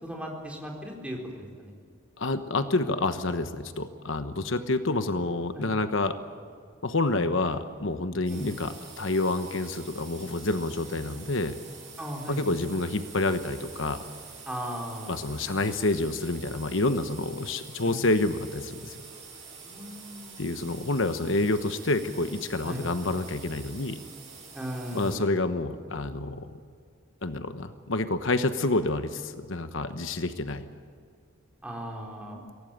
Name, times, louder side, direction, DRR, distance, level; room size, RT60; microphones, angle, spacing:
voice 1, 0.0-1.7 5.5-5.7 8.3-8.5 12.0-12.4 14.5-15.2 17.8-18.0 19.6-20.4 22.6-22.9 24.5-25.3 31.6-32.4, equal, 5° right, 0 dB, 3.9 m, -37 dB
voice 2, 2.2-6.2 6.8-11.5 12.3-14.0 15.1-18.9 20.4-24.0 24.9-26.5 27.2-30.6 32.2-32.5, left 2 dB, 65° left, 10 dB, 1.1 m, -28 dB
sound 1, 8.2-25.1, right 5 dB, 35° right, 8.0 m, -47 dB
23.5 x 17.5 x 8.9 m, 2.3 s
head